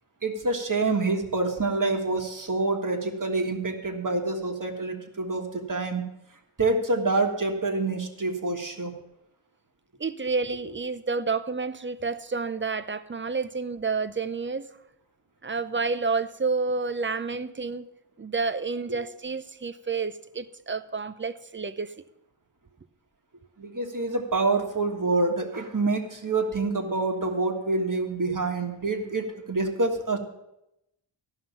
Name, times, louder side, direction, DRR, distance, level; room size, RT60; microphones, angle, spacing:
voice 1, 0.2-6.0 6.6-8.9 23.6-30.2, right 3 dB, 40° right, 3 dB, 1.6 m, -27 dB
voice 2, 10.0-14.7 15.4-17.9 18.2-22.0, right 4 dB, 25° right, 13 dB, 0.6 m, -29 dB
13.5 x 5.8 x 7.1 m, 0.86 s
wide cardioid pair, 65°, 49 cm